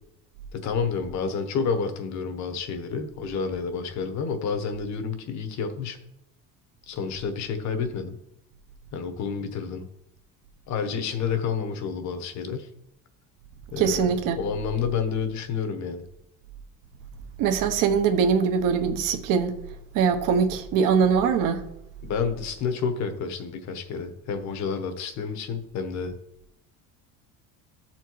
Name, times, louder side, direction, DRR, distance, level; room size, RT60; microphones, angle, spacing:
voice 1, 0.5-6.0 6.9-8.2 8.9-9.9 10.7-12.7 13.7-14.1 14.4-16.0 22.1-26.2, left 6 dB, 55° left, 1.2 m, -29 dB
voice 2, 13.8-14.4 17.4-19.6 19.9-21.6, right 6 dB, 70° right, 1.1 m, -22 dB
13.0 x 4.5 x 4.6 m
cardioid pair, 140°, 34 cm